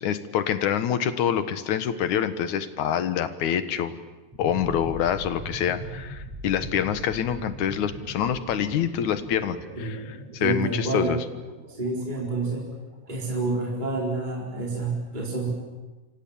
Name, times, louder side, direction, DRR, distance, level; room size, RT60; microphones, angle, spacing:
voice 1, 0.0-4.0 4.4-10.0 10.3-11.2, left 9 dB, 70° left, 11 dB, 2.7 m, -26 dB
sound 1, 4.3-13.2, right 1 dB, 50° right, 8.2 m, -41 dB
voice 2, 10.4-11.2 11.7-12.7 13.1-15.5, right 2 dB, 15° right, -2 dB, 4.3 m, -28 dB
28.0 x 25.5 x 7.3 m, 1.2 s
omnidirectional pair, 3.6 m